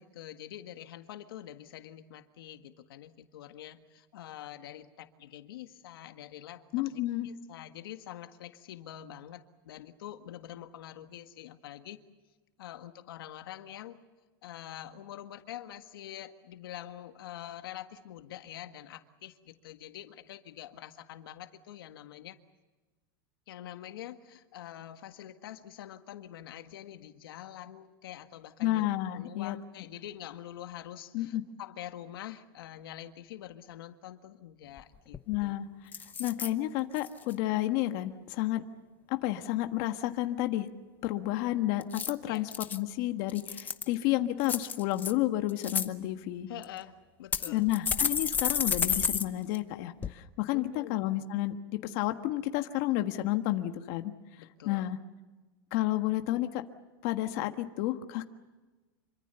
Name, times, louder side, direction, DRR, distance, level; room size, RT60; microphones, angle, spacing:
voice 1, 0.0-12.0 12.6-14.0 14.4-22.4 23.5-28.9 29.1-35.5 42.2-42.5 46.5-47.7 50.5-51.0 54.4-54.9, left 12 dB, 80° left, 8 dB, 1.7 m, -45 dB
voice 2, 6.7-7.3 28.6-29.6 31.1-31.4 35.3-38.6 39.1-40.7 41.0-46.5 47.5-54.1 54.6-55.0 55.7-56.6 57.0-58.2, left 15 dB, 45° left, 7 dB, 1.5 m, -31 dB
sound 1, 34.8-34.9 35.1-35.5 35.9-36.5 37.0-37.3 41.8-42.8 43.3-43.9 44.4-45.1 45.5-45.9 46.6-46.7 47.3-49.3 49.5-49.6 50.0-50.1, left 6 dB, 15° left, 1.0 m, -31 dB
26.5 x 25.0 x 6.9 m, 1.2 s
supercardioid pair, 160°, 12 cm